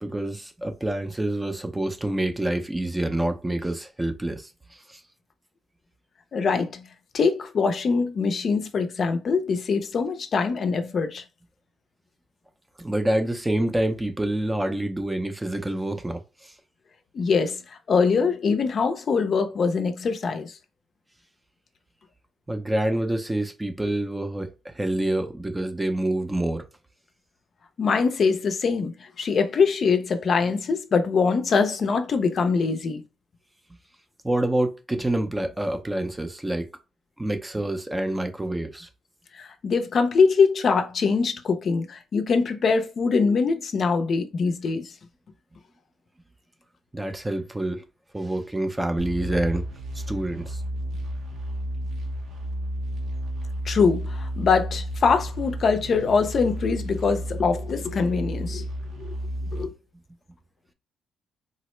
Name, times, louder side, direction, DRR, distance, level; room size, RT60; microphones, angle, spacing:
voice 1, 0.0-4.5 4.9-5.0 12.8-16.5 22.5-26.7 34.2-36.7 37.2-38.9 46.9-47.8 48.1-49.6 50.1-50.6, right 1 dB, 10° right, 0.5 m, -27 dB
voice 2, 6.3-6.8 7.1-11.2 17.1-20.6 27.8-33.0 39.3-44.9 53.6-58.7 59.0-59.1 59.5-59.7, left 5 dB, 50° left, 0.5 m, -23 dB
sound 1, 49.0-59.6, right 1 dB, 75° right, 0.8 m, -32 dB
3.8 x 2.0 x 3.0 m
cardioid pair, 90°, 0 cm